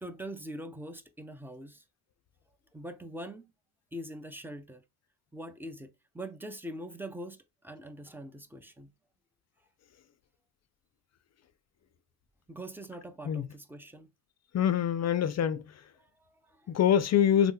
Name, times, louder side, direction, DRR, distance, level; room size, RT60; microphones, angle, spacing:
voice 1, 0.0-1.8 2.7-3.5 3.9-4.8 5.3-7.4 7.6-8.9 12.5-14.1 16.0-16.7, right 1 dB, 5° right, 0.5 m, -43 dB
voice 2, 14.5-15.7 16.7-17.5, left 9 dB, 40° left, 0.5 m, -25 dB
3.2 x 2.1 x 3.1 m
supercardioid pair, 80°, 40 cm